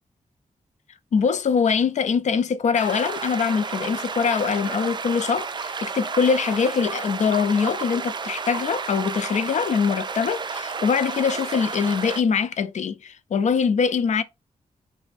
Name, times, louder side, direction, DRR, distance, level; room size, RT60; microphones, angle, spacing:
voice 1, 1.1-14.2, left 6 dB, 65° left, 0.4 m, -23 dB
sound 1, 2.8-12.2, right 5 dB, 35° right, 0.3 m, -31 dB
4.0 x 2.7 x 3.3 m
wide cardioid pair, 140°, 13 cm